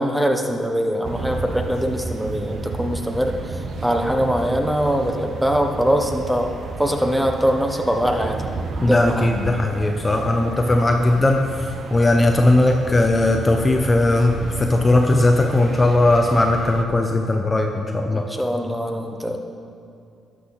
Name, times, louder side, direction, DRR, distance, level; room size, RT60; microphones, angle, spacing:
voice 1, 0.0-3.3 3.8-6.5 6.8-8.4 8.9-9.3 18.1-19.4, equal, 5° right, 3 dB, 0.9 m, -22 dB
sound 1, 1.0-16.8, right 3 dB, 55° right, 0.7 m, -32 dB
voice 2, 8.8-11.5 11.9-18.3, left 2 dB, 25° left, 3 dB, 0.6 m, -18 dB
12.0 x 6.2 x 4.0 m, 2.5 s
cardioid pair, 90°, 0 cm